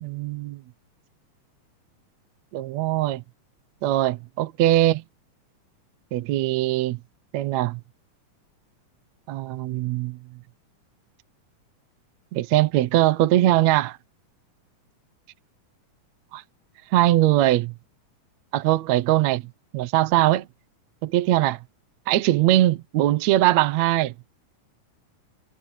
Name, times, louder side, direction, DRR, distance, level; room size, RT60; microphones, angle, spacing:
voice 1, 0.0-0.6 2.5-3.2 3.8-5.0 6.1-7.0 7.3-7.8 9.3-10.2 12.3-14.0 16.3-16.4 16.9-17.7 18.5-19.4 19.7-20.5 21.0-21.6 22.1-24.1, right 15 dB, 70° right, 2.0 m, -21 dB
omnidirectional pair, 3.7 m